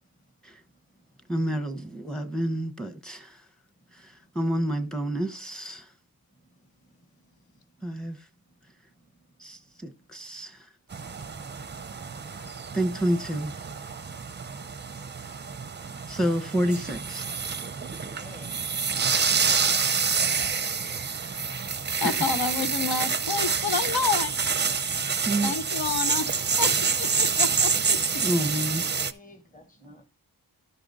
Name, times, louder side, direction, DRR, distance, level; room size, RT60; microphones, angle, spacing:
voice 1, 0.7-1.0 3.8-3.9 4.2-4.3 6.4-6.6 6.9-7.0 9.0-9.1 10.0-10.1 11.4-11.5 17.7-18.6 20.1-21.2 29.0-30.0, left 1 dB, 20° left, 1.3 m, -53 dB
voice 2, 1.3-3.4 3.9-5.9 7.8-8.2 9.4-10.7 12.7-13.6 16.1-17.2 22.0-22.3 25.3-25.6 28.2-28.9, right 1 dB, ahead, 0.9 m, -29 dB
sound 1, 10.9-29.1, right 5 dB, 30° right, 0.5 m, -27 dB
voice 3, 22.0-24.3 25.4-26.3 26.6-28.0, left 5 dB, 70° left, 0.9 m, -29 dB
12.0 x 4.9 x 4.0 m
wide cardioid pair, 120°, 38 cm